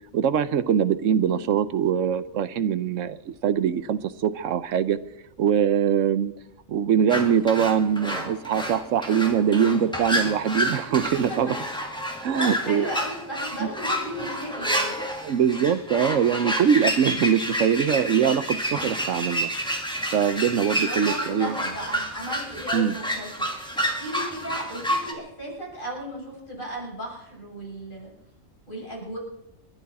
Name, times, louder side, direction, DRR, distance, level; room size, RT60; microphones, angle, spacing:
voice 1, 0.1-5.0 5.4-6.3 6.7-11.6 12.2-12.9 13.6-13.7 15.2-19.5 20.1-21.6 22.7-23.0, right 8 dB, 70° right, 13 dB, 1.1 m, -23 dB
sound 1, 7.1-25.1, equal, 5° left, 2.0 m, -29 dB
voice 2, 12.3-14.9 20.8-28.1 28.7-29.2, equal, 35° left, -4 dB, 7.3 m, -35 dB
29.0 x 11.0 x 4.2 m, 0.83 s
omnidirectional pair, 1.4 m